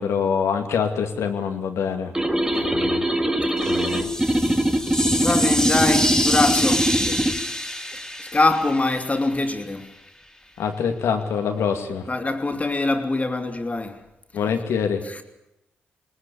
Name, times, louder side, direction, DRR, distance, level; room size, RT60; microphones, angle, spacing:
voice 1, 0.0-2.1 2.6-3.1 3.6-4.1 7.1-7.2 10.6-12.0 14.3-15.0, left 6 dB, 75° left, 2.5 m, -25 dB
sound 1, 2.2-7.4, right 1 dB, 15° right, 2.6 m, -22 dB
voice 2, 2.4-2.8 3.9-4.2 5.2-7.0 8.2-9.9 12.1-14.0 15.0-15.2, left 2 dB, 30° left, 3.1 m, -24 dB
sound 2, 3.6-9.5, left 1 dB, 10° left, 3.6 m, -27 dB
21.5 x 19.5 x 8.6 m
hypercardioid pair, 45°, 5 cm